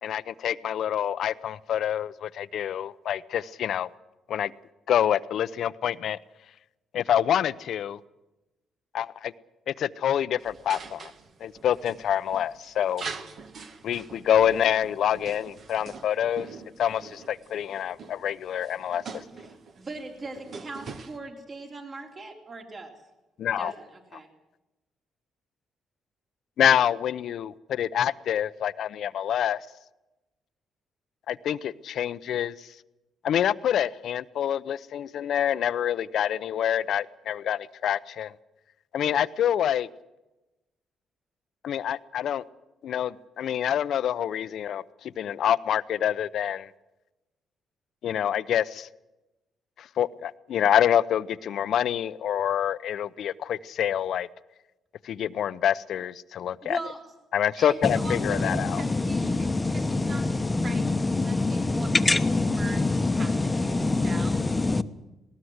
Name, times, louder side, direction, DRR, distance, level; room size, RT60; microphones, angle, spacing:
voice 1, 0.0-3.9 4.3-4.5 4.9-6.2 6.9-8.0 8.9-9.3 9.7-11.0 11.4-13.1 13.8-16.5 16.8-19.2 23.4-23.7 26.6-29.6 31.3-32.5 33.2-38.3 38.9-39.9 41.6-42.4 42.8-46.7 48.0-48.9 49.8-54.3 55.0-56.8 57.3-58.8, left 10 dB, 70° left, 0.7 m, -26 dB
sound 1, 10.4-21.2, right 5 dB, 55° right, 1.8 m, -44 dB
voice 2, 19.4-22.9 23.6-24.3 56.6-57.1 57.6-60.9 61.2-61.9 62.4-62.8 63.1-63.3 63.6-64.5, right 3 dB, 40° right, 3.8 m, -40 dB
voice 3, 57.8-64.8, left 2 dB, 20° left, 1.0 m, -25 dB
19.0 x 18.5 x 8.0 m
cardioid pair, 90°, 0 cm